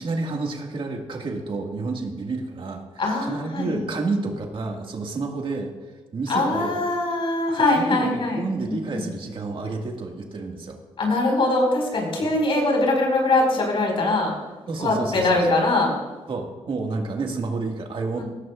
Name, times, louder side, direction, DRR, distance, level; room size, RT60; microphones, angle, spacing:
voice 1, 0.0-2.8 3.2-5.7 6.1-6.8 7.5-10.8 12.2-12.3 14.7-15.6 16.3-18.2, right 3 dB, 55° right, 2 dB, 2.0 m, -30 dB
voice 2, 3.0-3.8 6.3-9.0 11.0-14.3 14.8-15.9 18.2-18.3, left 2 dB, 60° left, 0 dB, 5.0 m, -22 dB
17.5 x 15.0 x 2.5 m, 1.3 s
cardioid pair, 65°, 10 cm